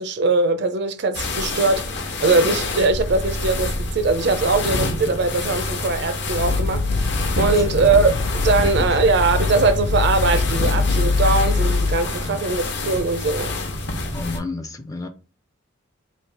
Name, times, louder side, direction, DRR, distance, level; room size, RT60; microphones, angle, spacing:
voice 1, 0.0-1.9 2.2-7.1 7.4-13.7, right 3 dB, 55° right, 0.5 m, -21 dB
sound 1, 1.1-14.4, left 2 dB, 60° left, 0.8 m, -27 dB
sound 2, 6.3-12.0, left 3 dB, 80° left, 0.5 m, -23 dB
voice 2, 8.6-9.0 12.1-12.5 14.1-15.1, left 2 dB, 15° left, 0.4 m, -32 dB
3.2 x 2.8 x 4.5 m
head